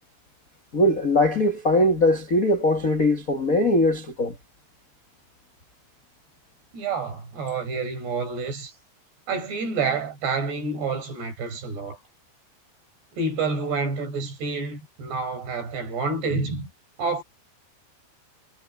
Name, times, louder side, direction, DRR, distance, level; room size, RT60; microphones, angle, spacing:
voice 1, 0.7-4.4, left 1 dB, 70° left, 0.8 m, -21 dB
voice 2, 6.7-8.7 9.3-12.0 13.1-16.7 17.0-17.2, right 4 dB, 70° right, 8.9 m, -28 dB
omnidirectional pair, 5.0 m